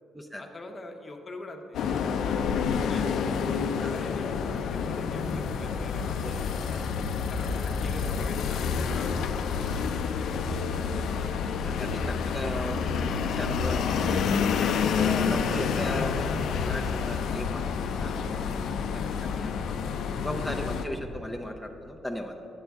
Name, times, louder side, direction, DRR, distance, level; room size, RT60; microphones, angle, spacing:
voice 1, 0.4-1.8 2.2-3.2 3.9-6.6 7.3-11.3 18.5-18.8, left 2 dB, 35° left, 4 dB, 0.8 m, -44 dB
sound 1, 1.7-20.9, left 6 dB, 75° left, 0.4 m, -28 dB
voice 2, 6.2-7.3 11.2-14.5 14.8-18.6 18.9-19.8 20.2-22.4, equal, 5° right, 2 dB, 0.5 m, -38 dB
9.0 x 7.9 x 3.5 m, 2.9 s
cardioid pair, 90°, 0 cm